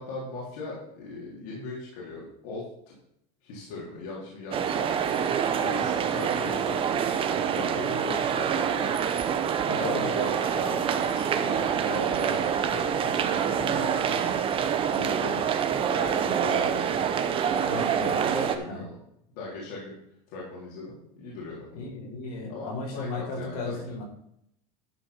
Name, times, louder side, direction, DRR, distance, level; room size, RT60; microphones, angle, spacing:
voice 1, 0.0-2.6 3.4-6.8 7.2-9.0 9.7-15.4 15.9-19.0 19.3-20.0 20.3-21.7 22.5-23.8, left 2 dB, 70° left, -5 dB, 3.6 m, -39 dB
sound 1, 4.5-18.6, right 8 dB, 30° right, 0.8 m, -26 dB
voice 2, 9.7-10.1 17.7-18.3 18.7-18.8 21.7-24.0, left 3 dB, 85° left, -2 dB, 4.5 m, -35 dB
12.0 x 4.4 x 5.9 m, 0.74 s
supercardioid pair, 135°, 19 cm